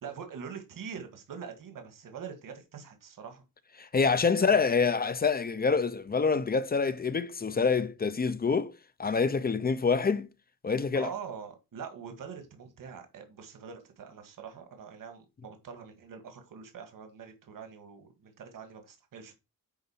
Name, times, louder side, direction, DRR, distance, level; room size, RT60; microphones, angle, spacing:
voice 1, 0.0-3.4 4.4-4.6 10.9-19.3, right 6 dB, 65° right, 2.0 m, -44 dB
voice 2, 3.8-8.7 9.0-10.3 10.6-11.1, left 5 dB, 25° left, 0.6 m, -26 dB
9.7 x 4.0 x 5.6 m
wide cardioid pair, 140°, 35 cm